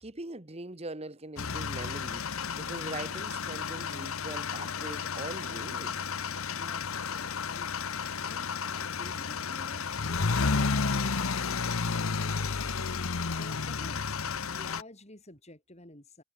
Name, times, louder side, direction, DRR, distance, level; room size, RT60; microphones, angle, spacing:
voice 1, 0.0-2.3 2.6-6.1, right 2 dB, 30° right, 1.7 m, -42 dB
sound 1, 1.4-14.8, left 5 dB, 80° left, 1.0 m, -32 dB
voice 2, 6.4-7.7 8.2-12.7 13.0-14.2 14.5-16.2, left 1 dB, 30° left, 6.3 m, -51 dB
head